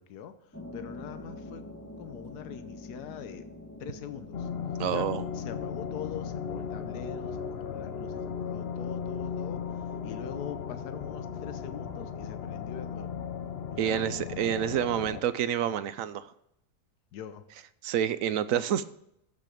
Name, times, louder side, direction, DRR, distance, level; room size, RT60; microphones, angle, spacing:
voice 1, 0.0-1.6 2.0-3.4 3.8-4.5 4.9-5.1 5.3-13.2 13.7-15.0 17.1-17.4, left 9 dB, 80° left, 10 dB, 1.3 m, -43 dB
sound 1, 0.5-13.6, left 2 dB, 10° left, 1.1 m, -48 dB
sound 2, 4.3-15.2, left 7 dB, 55° left, 0.8 m, -36 dB
voice 2, 4.8-5.2 13.8-16.3 17.8-18.8, right 10 dB, 70° right, 15 dB, 0.9 m, -28 dB
14.0 x 6.1 x 5.1 m, 0.76 s
omnidirectional pair, 1.7 m